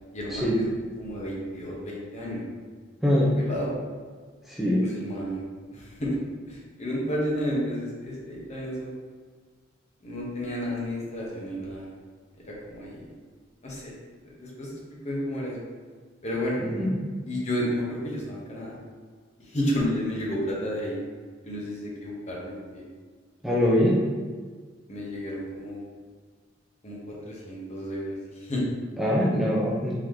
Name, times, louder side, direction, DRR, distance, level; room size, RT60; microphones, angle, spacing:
voice 1, 0.1-0.6 1.0-2.4 3.2-3.7 4.8-5.4 5.7-6.2 6.5-8.9 10.0-11.9 12.5-13.1 13.6-13.9 14.4-14.8 15.0-15.6 16.2-16.6 17.3-18.8 19.4-21.0 21.4-22.8 24.9-25.8 26.8-28.6, equal, 35° left, -4 dB, 0.9 m, -31 dB
voice 2, 3.0-3.3 4.5-4.8 16.7-17.0 23.4-24.0 29.0-29.9, left 1 dB, ahead, -6 dB, 0.4 m, -23 dB
3.8 x 2.9 x 3.2 m, 1.6 s
head